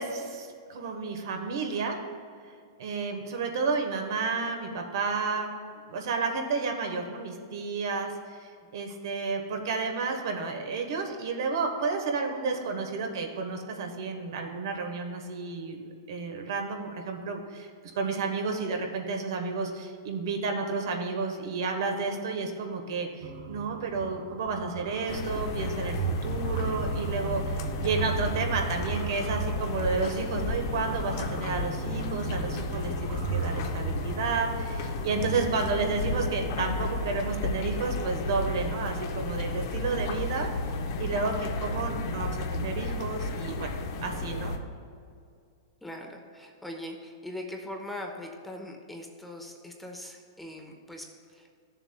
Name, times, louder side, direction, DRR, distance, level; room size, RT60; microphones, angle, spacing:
voice 1, 0.0-2.0 2.8-5.5 5.9-15.8 16.1-17.7 17.9-26.0 26.2-40.5 41.0-43.7 44.0-44.5, right 4 dB, 70° right, 3 dB, 1.1 m, -31 dB
sound 1, 23.2-35.7, right 6 dB, 55° right, 0.7 m, -36 dB
sound 2, 25.1-44.6, left 2 dB, 55° left, 0.8 m, -33 dB
voice 2, 45.8-51.6, left 1 dB, 5° left, 1 dB, 0.8 m, -41 dB
13.5 x 7.0 x 2.2 m, 2.3 s
hypercardioid pair, 140°, 2 cm